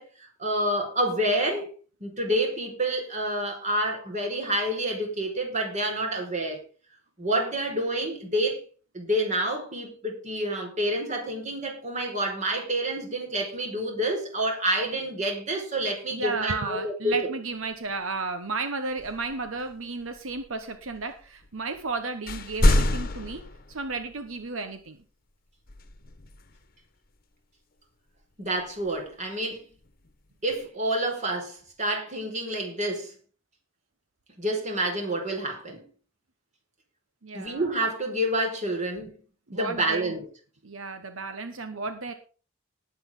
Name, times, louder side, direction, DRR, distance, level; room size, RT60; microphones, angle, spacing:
voice 1, 0.0-1.7 2.0-6.6 7.2-8.6 8.9-17.3 28.4-29.7 30.4-33.1 34.4-35.8 37.3-39.1 39.5-40.3, right 1 dB, 35° right, 4.8 m, -28 dB
voice 2, 16.1-23.4 23.7-25.0 37.2-37.6 39.5-40.2 40.6-42.1, right 3 dB, 80° right, 1.2 m, -33 dB
sound 1, 17.7-17.8 18.9-21.9 22.3-24.4 25.7-26.8 28.6-29.2 29.8-30.6, left 1 dB, 45° left, 1.3 m, -29 dB
19.0 x 8.1 x 3.9 m
head